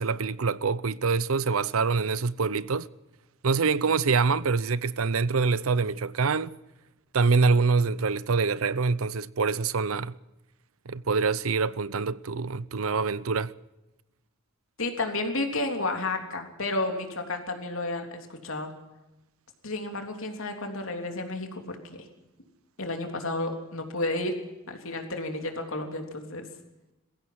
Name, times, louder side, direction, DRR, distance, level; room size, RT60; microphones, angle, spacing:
voice 1, 0.0-2.9 3.4-6.5 7.1-10.2 10.9-13.5, right 4 dB, 80° right, 0.7 m, -25 dB
voice 2, 14.8-18.7 19.6-22.0 22.8-24.4 24.7-26.4, left 2 dB, 70° left, 3.4 m, -31 dB
21.5 x 16.0 x 7.6 m
head